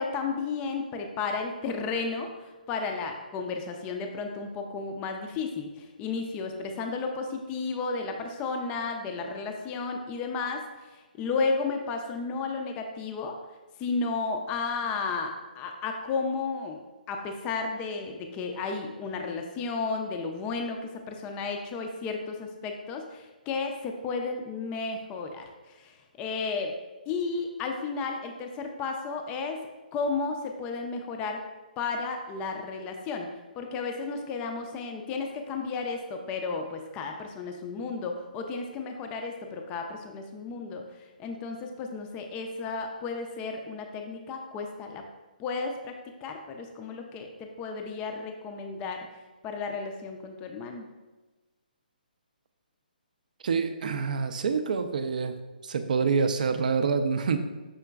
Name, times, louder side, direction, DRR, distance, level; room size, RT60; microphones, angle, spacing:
voice 1, 0.0-10.6 10.9-13.4 13.8-16.8 17.1-26.7 27.1-29.6 29.9-31.4 31.8-33.3 33.6-40.8 41.2-45.0 45.4-49.1 49.4-50.9, left 4 dB, 20° left, 4 dB, 0.4 m, -33 dB
voice 2, 53.4-55.4 55.6-57.4, right 5 dB, 55° right, 9 dB, 0.4 m, -26 dB
5.7 x 3.7 x 2.2 m, 1.2 s
figure-of-eight pair, 140°, 5 cm